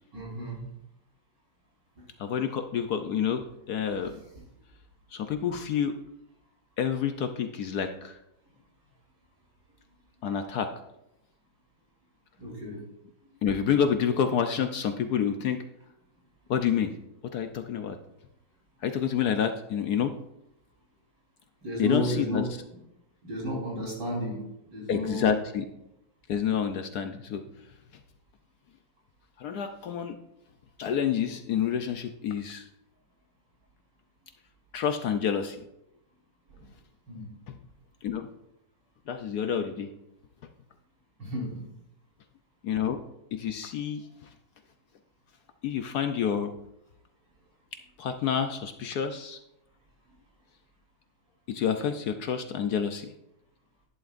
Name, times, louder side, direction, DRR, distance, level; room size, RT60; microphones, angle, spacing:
voice 1, 0.1-0.7 2.0-2.1 4.0-4.4 12.4-12.8 17.5-17.6 21.6-22.8 23.2-25.4 36.5-36.7 37.1-37.2 41.2-41.7, left 1 dB, 70° right, -3 dB, 4.6 m, -33 dB
voice 2, 2.2-4.1 5.1-5.9 6.8-8.2 10.2-10.7 13.4-15.6 16.5-16.9 17.3-18.0 18.8-20.1 21.8-22.4 24.9-25.6 26.3-27.4 29.4-30.2 30.8-32.6 34.7-35.6 38.0-38.3 39.1-39.9 42.6-43.0 43.3-44.0 45.6-46.5 48.0-49.4 51.5-53.1, left 8 dB, 65° left, 7 dB, 1.1 m, -28 dB
11.5 x 11.0 x 2.5 m, 0.84 s
omnidirectional pair, 2.0 m